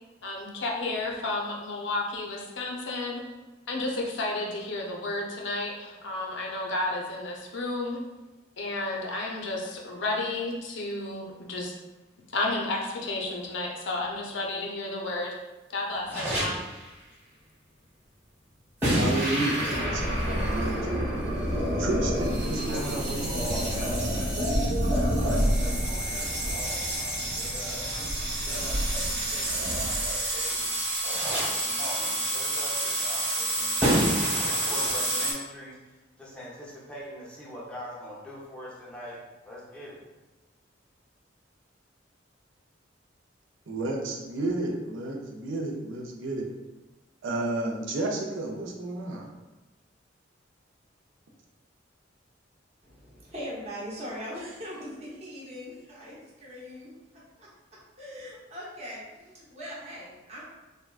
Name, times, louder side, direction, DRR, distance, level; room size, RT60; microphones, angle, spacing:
voice 1, 0.2-3.2 3.7-8.0 8.6-11.8 12.3-15.4 15.7-16.6, left 2 dB, 70° left, -1 dB, 0.5 m, -32 dB
sound 1, 16.1-17.0 18.8-29.7 31.1-31.9 33.8-34.9, equal, 10° right, 1.0 m, -32 dB
sound 2, 18.8-35.3, right 1 dB, 60° right, 0.9 m, -29 dB
voice 2, 18.9-21.1 21.8-23.3 43.7-46.5 47.2-49.3, right 2 dB, 80° right, 0 dB, 0.5 m, -31 dB
voice 3, 22.4-27.9 28.4-34.4 34.7-39.2 39.4-40.0, equal, 5° left, -6 dB, 0.5 m, -43 dB
voice 4, 52.8-60.4, equal, 35° right, -6 dB, 0.8 m, -41 dB
3.5 x 2.2 x 2.3 m, 1.1 s
head